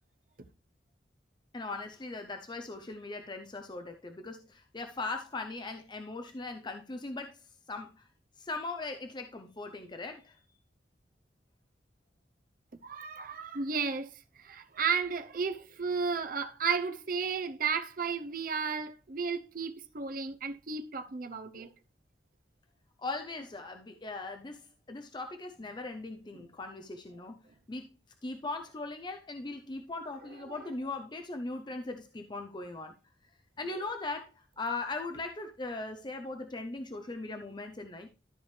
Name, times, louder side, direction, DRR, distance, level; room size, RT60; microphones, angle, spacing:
voice 1, 1.5-7.4 7.7-8.1 8.4-10.4 23.0-27.4 27.7-27.9 28.2-33.0 33.6-38.1, left 3 dB, 25° left, 0.6 m, -39 dB
voice 2, 12.8-21.7 26.3-26.5 30.5-30.6 33.7-33.8, right 5 dB, 50° right, 0.7 m, -33 dB
13.0 x 5.0 x 3.2 m
head